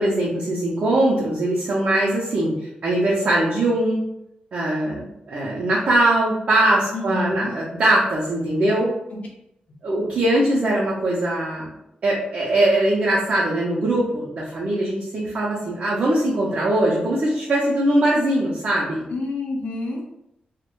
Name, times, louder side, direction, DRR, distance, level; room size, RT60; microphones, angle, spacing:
voice 1, 0.0-2.5 2.8-4.0 4.5-8.9 9.8-11.7 12.0-19.0, right 1 dB, 55° right, -5 dB, 0.5 m, -21 dB
voice 2, 6.9-7.5 9.1-9.2 19.1-20.0, left 2 dB, 55° left, -1 dB, 0.6 m, -28 dB
2.3 x 2.1 x 2.9 m, 0.83 s
wide cardioid pair, 175°, 3 cm